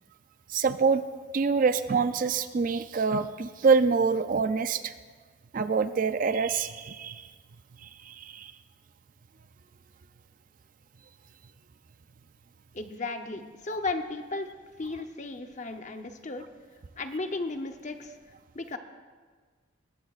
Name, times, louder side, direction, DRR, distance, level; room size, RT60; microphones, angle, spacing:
voice 1, 0.5-1.0 1.3-4.9 5.5-7.3 7.8-8.5, right 5 dB, 40° right, 11 dB, 0.4 m, -26 dB
voice 2, 12.7-14.5 14.8-16.4 17.0-18.2 18.5-18.8, left 3 dB, 35° left, 7 dB, 0.8 m, -34 dB
20.0 x 16.0 x 2.5 m, 1.5 s
head